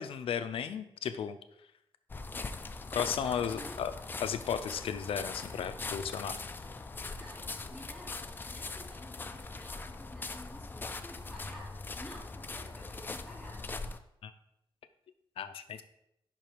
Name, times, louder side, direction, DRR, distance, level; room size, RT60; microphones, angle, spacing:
voice 1, 0.0-1.4 2.9-3.9 4.2-6.4 14.2-14.3 15.4-15.8, left 8 dB, 80° left, 10 dB, 0.5 m, -34 dB
sound 1, 2.1-14.0, left 3 dB, 20° left, 0.3 m, -41 dB
voice 2, 3.2-3.9 7.0-13.7 15.7-15.8, equal, ahead, -4 dB, 2.4 m, -51 dB
5.5 x 4.6 x 5.0 m, 0.79 s
wide cardioid pair, 145°, 9 cm